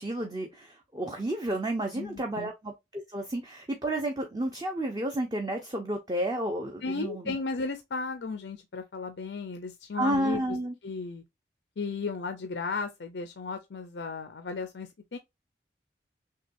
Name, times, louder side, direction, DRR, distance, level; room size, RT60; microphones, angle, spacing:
voice 1, 0.0-7.4 10.0-10.7, right 1 dB, 20° right, 0.7 m, -31 dB
voice 2, 1.9-2.5 6.8-10.6 10.8-11.2 11.8-15.2, left 4 dB, 85° left, 0.6 m, -35 dB
6.4 x 2.3 x 2.6 m
head